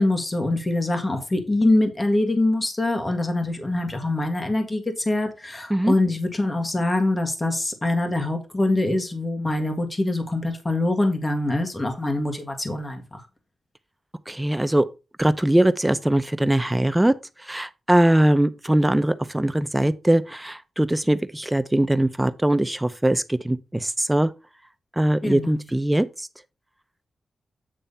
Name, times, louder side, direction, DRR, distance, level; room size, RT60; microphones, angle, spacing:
voice 1, 0.0-13.2 25.2-25.6, left 2 dB, 25° left, 1.7 m, -24 dB
voice 2, 14.3-14.9 15.2-17.1 17.5-24.3 25.0-26.1, right 1 dB, 10° right, 0.6 m, -21 dB
8.8 x 3.4 x 5.4 m
wide cardioid pair, 100°, 0 cm